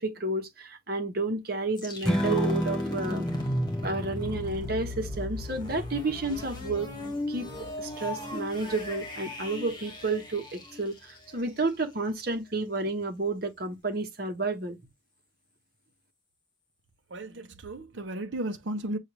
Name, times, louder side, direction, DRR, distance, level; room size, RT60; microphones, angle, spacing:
voice 1, 0.0-3.3 3.8-6.9 7.3-14.8, right 2 dB, 50° right, 1.0 m, -31 dB
sound 1, 1.8-11.6, left 1 dB, 25° left, 1.4 m, -37 dB
Strum, 2.0-8.3, equal, 5° left, 0.3 m, -33 dB
voice 2, 17.1-19.0, right 1 dB, 65° right, 0.7 m, -34 dB
6.3 x 2.4 x 3.0 m
head